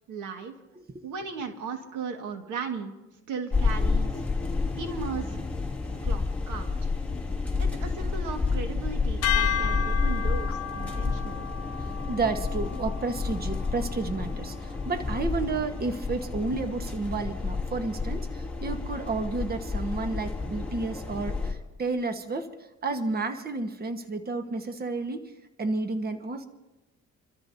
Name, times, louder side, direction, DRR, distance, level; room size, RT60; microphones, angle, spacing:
voice 1, 0.1-0.6 1.0-2.9 3.3-4.1 4.8-5.4 6.0-6.9 7.6-11.5, right 5 dB, 90° right, 5 dB, 1.9 m, -36 dB
sound 1, 3.5-21.5, left 4 dB, 5° left, 2.9 m, -30 dB
sound 2, 9.2-15.6, left 8 dB, 55° left, 0.8 m, -34 dB
voice 2, 12.1-22.5 22.8-25.3 25.6-26.4, right 3 dB, 30° right, 7 dB, 1.3 m, -31 dB
27.5 x 13.5 x 2.7 m, 1.0 s
cardioid pair, 90°, 30 cm